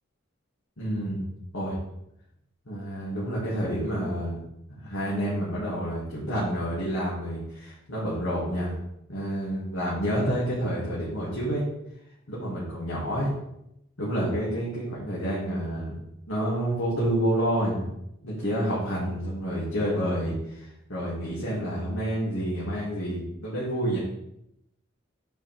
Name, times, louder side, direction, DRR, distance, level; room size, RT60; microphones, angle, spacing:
voice 1, 0.8-1.3 1.5-1.8 2.7-4.4 4.8-8.7 9.1-11.6 12.3-13.3 14.0-16.0 16.3-17.9 18.2-24.0, equal, 75° left, -8 dB, 2.6 m, -29 dB
9.1 x 5.3 x 3.6 m, 0.81 s
head